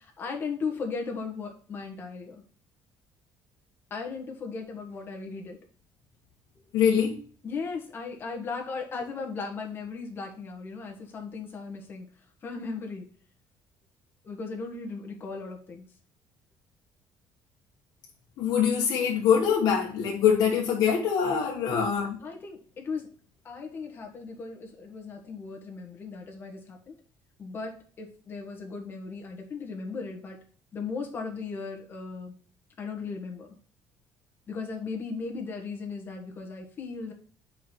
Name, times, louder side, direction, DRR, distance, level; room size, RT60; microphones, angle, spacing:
voice 1, 0.0-2.4 3.9-5.6 7.4-12.1 12.4-13.1 14.2-15.8 21.7-21.9 22.2-23.1 23.4-26.9 27.4-30.4 30.7-32.3 32.8-33.5 34.5-37.1, left 4 dB, 30° left, 1 dB, 1.6 m, -37 dB
voice 2, 6.7-7.2 18.4-22.2, left 7 dB, 65° left, -2 dB, 1.4 m, -24 dB
4.8 x 4.6 x 6.0 m, 0.41 s
cardioid pair, 160°, 7 cm